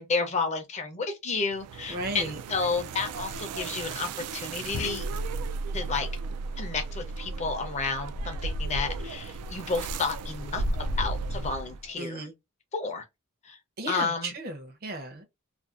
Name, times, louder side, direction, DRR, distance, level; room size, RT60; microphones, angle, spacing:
voice 1, 0.0-5.1 5.7-6.1 6.6-12.3 12.7-13.0 13.4-13.6 13.9-14.3, left 4 dB, 30° left, 0.5 m, -31 dB
sound 1, 1.5-11.9, right 2 dB, 85° right, 0.3 m, -36 dB
voice 2, 1.9-2.4 12.0-12.3 13.8-15.3, right 2 dB, 45° right, 0.6 m, -35 dB
sound 2, 4.7-9.4, right 1 dB, 85° left, 0.3 m, -35 dB
2.5 x 2.2 x 2.4 m
head